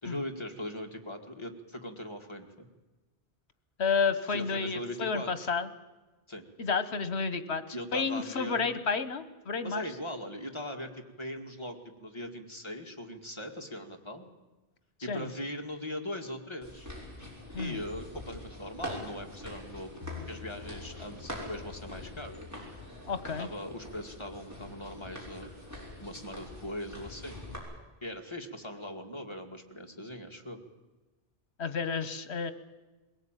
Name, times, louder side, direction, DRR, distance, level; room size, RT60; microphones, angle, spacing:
voice 1, 0.0-2.7 4.3-5.5 6.3-6.4 7.7-8.8 9.6-14.3 15.0-16.9 17.6-20.0 20.3-22.7 23.4-25.5 26.0-27.4 28.0-30.6, left 1 dB, 25° left, 3 dB, 2.1 m, -40 dB
voice 2, 3.8-5.7 6.6-9.8 15.1-15.3 17.5-17.8 23.1-23.5 31.6-32.5, left 5 dB, 75° left, 13 dB, 1.5 m, -31 dB
sound 1, 16.6-27.6, left 1 dB, 15° right, 5.9 m, -44 dB
sound 2, 20.0-25.8 26.1-26.2, left 7 dB, 30° right, 5.5 m, -50 dB
22.0 x 18.0 x 9.1 m, 1.2 s
omnidirectional pair, 1.1 m